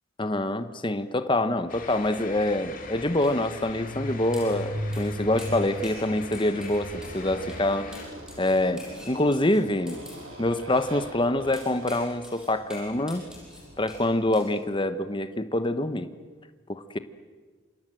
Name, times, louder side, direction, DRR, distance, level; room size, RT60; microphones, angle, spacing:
voice 1, 0.2-7.9 8.4-10.0 10.4-13.3 13.8-16.1 16.7-17.0, left 1 dB, 25° left, 11 dB, 1.0 m, -26 dB
Motorcycle, 1.5-14.2, equal, 80° right, 7.7 m, -40 dB
sound 1, 1.7-8.1, left 4 dB, 40° left, 2.7 m, -43 dB
sound 2, 3.2-3.3 4.3-4.6 4.9-5.1 5.4-6.1 6.3-7.2 7.5-7.6 7.9-10.2 11.5-14.1 14.3-14.5, left 1 dB, 5° right, 7.0 m, -46 dB
28.0 x 25.5 x 7.8 m, 1.5 s
head